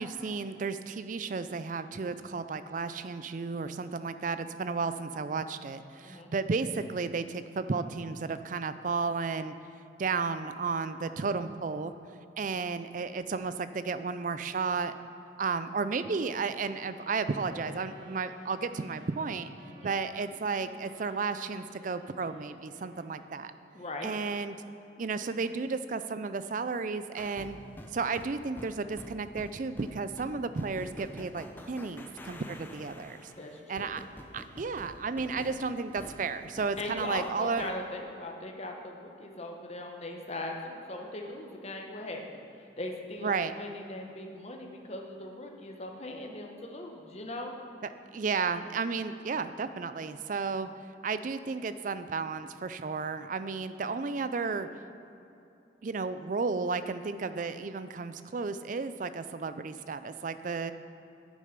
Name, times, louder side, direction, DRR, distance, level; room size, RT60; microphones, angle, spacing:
voice 1, 0.0-9.5 10.0-11.9 12.4-14.9 15.4-19.5 19.8-23.5 24.0-24.6 25.0-27.6 27.9-33.3 33.7-34.0 34.3-37.7 43.2-43.5 48.1-50.7 51.0-54.7 55.8-60.7, right 4 dB, 45° right, 12 dB, 0.4 m, -33 dB
Wind instrument woodwind instrument, 16.5-23.9, equal, 70° right, 1.2 m, -54 dB
voice 2, 23.7-24.1 33.4-34.0 36.8-47.5, left 1 dB, 35° left, 2 dB, 1.1 m, -40 dB
sound 1, 27.1-37.8, left 1 dB, 10° left, 0.6 m, -48 dB
9.8 x 8.7 x 5.3 m, 2.9 s
head